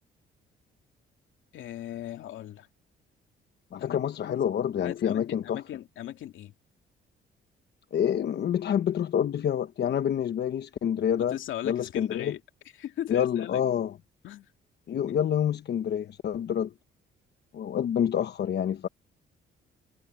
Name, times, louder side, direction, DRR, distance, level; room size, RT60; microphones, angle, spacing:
voice 1, 1.5-2.7 3.8-4.0 4.2-4.4 4.8-6.5 11.3-12.4 12.8-13.7 14.2-14.5, left 12 dB, 80° left, 2.4 m, -38 dB
voice 2, 3.7-5.6 7.9-11.4 11.6-12.3 13.1-14.0 14.9-16.7 17.5-18.9, left 9 dB, 60° left, 1.0 m, -27 dB
cardioid pair, 90°, 20 cm